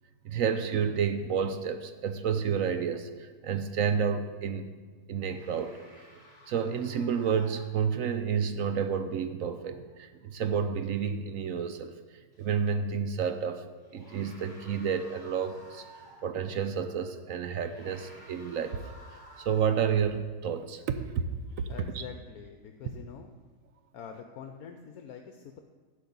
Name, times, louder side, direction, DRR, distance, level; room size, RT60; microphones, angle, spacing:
voice 1, 0.2-4.7 5.1-5.8 6.5-11.9 12.4-13.6 13.9-15.8 16.2-18.8 19.4-21.2, right 7 dB, 65° right, 9 dB, 1.0 m, -30 dB
sound 1, 5.3-8.1 12.3-12.5 13.7-16.4 17.5-20.0, equal, 25° right, 4.7 m, -53 dB
voice 2, 21.7-23.3 23.9-25.6, left 7 dB, 70° left, 5 dB, 1.2 m, -45 dB
12.0 x 5.4 x 8.6 m, 1.4 s
omnidirectional pair, 1.7 m